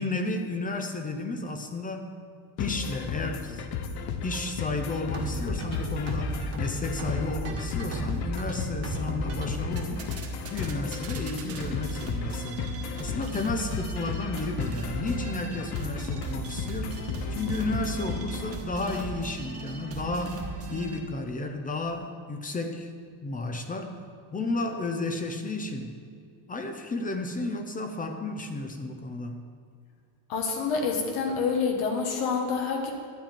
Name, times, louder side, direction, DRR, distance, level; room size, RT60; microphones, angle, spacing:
voice 1, 0.0-2.1 2.6-3.7 4.0-10.0 10.5-22.9 23.2-24.0 24.3-25.9 26.5-29.5, left 2 dB, 20° left, 5 dB, 0.5 m, -33 dB
sound 1, 2.6-18.6, left 5 dB, 50° left, 0.8 m, -34 dB
sound 2, 5.1-21.0, right 2 dB, 30° right, 1.2 m, -37 dB
voice 2, 30.3-32.9, left 5 dB, 75° left, 1 dB, 1.6 m, -27 dB
12.0 x 8.8 x 4.4 m, 2.2 s
cardioid pair, 170°, 48 cm